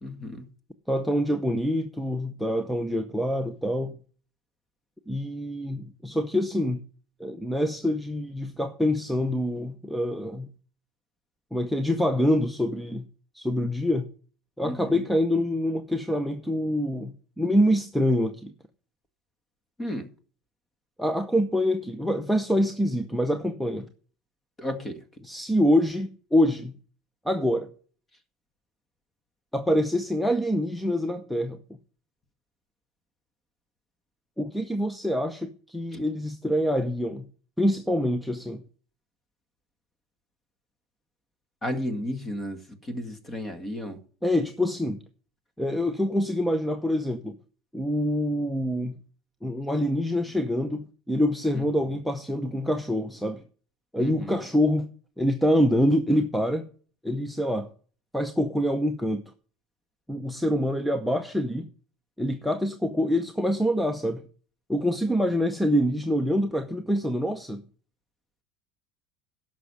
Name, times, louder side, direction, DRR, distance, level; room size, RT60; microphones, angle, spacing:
voice 1, 0.0-0.4 14.6-14.8 19.8-20.1 24.6-25.0 35.9-36.0 41.6-42.6 42.9-44.0 51.5-51.6 54.0-54.3, left 1 dB, 20° left, 1.8 m, -33 dB
voice 2, 0.9-4.0 5.1-6.8 7.2-10.5 11.5-13.1 13.3-14.1 14.6-18.5 21.0-23.9 25.2-26.7 27.2-27.7 29.5-31.6 34.4-37.3 37.6-38.6 44.2-45.0 45.6-47.4 47.7-49.0 49.4-53.4 53.9-54.9 55.2-56.7 57.0-57.7 58.1-59.2 60.1-61.7 62.2-64.2 64.7-67.6, equal, ahead, 0.7 m, -25 dB
11.0 x 6.4 x 7.0 m
supercardioid pair, 135°, 0 cm